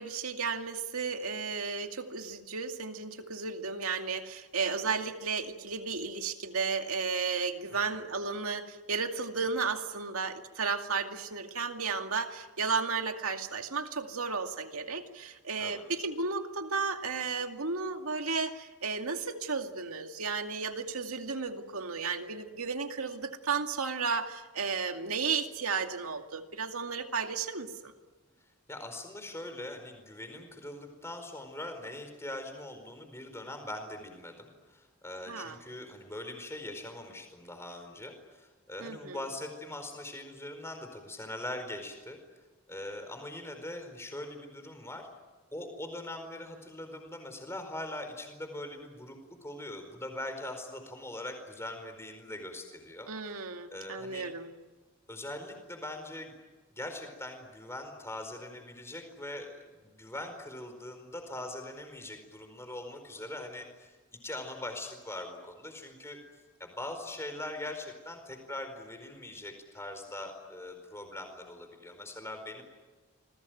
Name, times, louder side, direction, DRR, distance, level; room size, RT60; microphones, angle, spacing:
voice 1, 0.0-27.9 35.3-35.6 38.8-39.2 53.1-54.5, right 5 dB, 80° right, 5 dB, 2.3 m, -33 dB
voice 2, 28.7-42.2 42.7-45.1 45.5-53.4 53.7-54.3 55.1-56.3 56.7-59.5 59.8-64.0 64.2-66.2 66.6-72.6, left 1 dB, 10° left, 6 dB, 4.6 m, -42 dB
28.5 x 22.0 x 9.3 m, 1.3 s
head